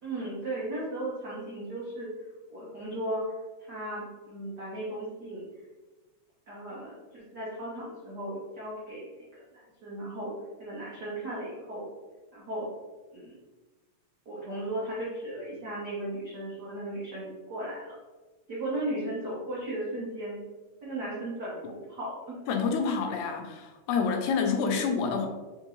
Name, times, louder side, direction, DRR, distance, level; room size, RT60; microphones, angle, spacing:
voice 1, 0.0-2.1 2.5-3.2 3.6-5.4 6.5-10.3 10.6-11.9 12.3-12.7 13.1-13.4 14.2-17.9 18.5-20.4 20.8-22.4 24.7-24.8, right 1 dB, 90° right, -7 dB, 0.8 m, -36 dB
voice 2, 22.5-25.3, left 5 dB, 80° left, 4 dB, 1.9 m, -28 dB
4.4 x 3.6 x 3.1 m, 1.2 s
omnidirectional pair, 3.5 m